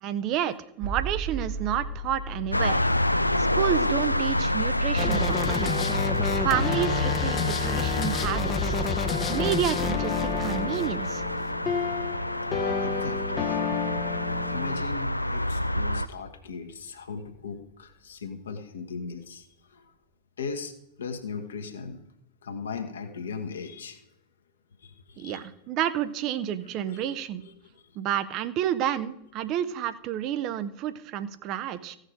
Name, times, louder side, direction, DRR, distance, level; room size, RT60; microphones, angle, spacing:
voice 1, 0.0-2.9 3.4-5.7 6.4-8.7 9.3-11.2 25.2-27.4 28.0-32.0, right 10 dB, 40° right, 13 dB, 0.6 m, -30 dB
sound 1, 0.8-16.7, right 3 dB, 55° right, 2.4 m, -40 dB
sound 2, 2.5-16.1, left 1 dB, 85° left, 0.3 m, -28 dB
sound 3, 5.0-14.8, left 6 dB, 25° left, 0.7 m, -29 dB
voice 2, 12.8-13.6 14.0-14.2 14.5-19.9 20.4-22.0 22.4-24.1 24.8-25.5 26.6-28.0, left 5 dB, 70° left, 5 dB, 1.2 m, -38 dB
15.5 x 6.5 x 5.0 m, 0.84 s
figure-of-eight pair, 90°, 0 cm